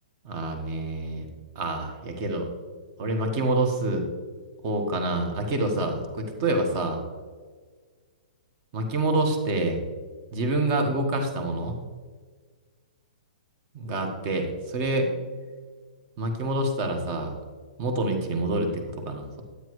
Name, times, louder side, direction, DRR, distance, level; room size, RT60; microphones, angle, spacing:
voice 1, 0.2-1.3 1.5-2.5 3.0-4.0 4.6-7.0 8.7-9.8 10.3-11.8 13.7-15.1 16.2-17.4 17.8-19.4, right 2 dB, 25° right, 4 dB, 1.3 m, -27 dB
10.0 x 9.6 x 3.1 m, 1.5 s
hypercardioid pair, 175°, 5 cm